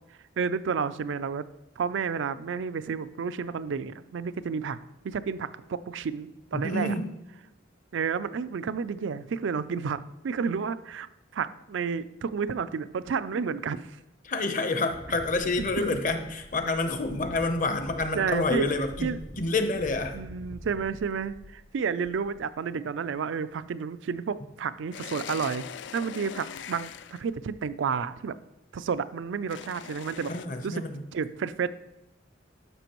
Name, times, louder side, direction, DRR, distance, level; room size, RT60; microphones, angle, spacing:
voice 1, 0.4-1.4 1.8-4.8 5.0-6.9 7.9-11.1 11.3-14.0 15.6-15.9 18.1-18.7 19.0-19.2 20.1-25.6 25.9-28.3 28.7-30.3 30.6-30.8 31.1-31.7, right 6 dB, 70° right, 15 dB, 0.4 m, -31 dB
voice 2, 6.5-7.1 14.2-20.2 30.3-31.0, left 2 dB, 45° left, 7 dB, 0.8 m, -28 dB
Wind, 14.9-21.7 22.0-22.5, equal, 10° left, 0.5 m, -45 dB
sound 1, 24.9-27.3 29.5-30.5, left 8 dB, 65° left, 0.4 m, -41 dB
12.0 x 6.0 x 3.0 m, 0.97 s
head